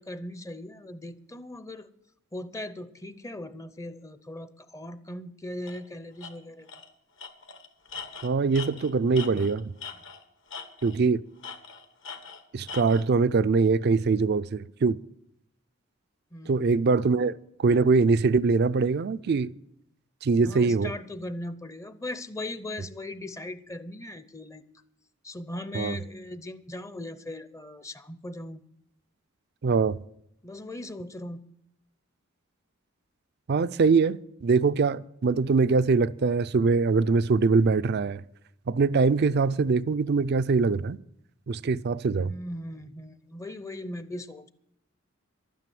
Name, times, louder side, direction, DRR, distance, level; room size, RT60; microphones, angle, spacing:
voice 1, 0.0-1.9 2.3-6.7 16.3-16.7 20.4-24.6 25.2-28.6 30.4-31.4 42.2-44.5, left 1 dB, 15° left, 0.6 m, -39 dB
Tools, 5.7-5.8 6.2-6.3 6.7-6.9 7.2-10.2 10.5-11.0 11.4-13.1, left 5 dB, 65° left, 1.4 m, -41 dB
voice 2, 8.2-9.7 10.8-11.2 12.5-15.0 16.5-19.5 20.2-20.9 25.7-26.0 29.6-30.0 33.5-38.2 38.7-41.0 41.5-42.3, right 4 dB, 50° right, 0.4 m, -23 dB
12.0 x 9.2 x 7.7 m
head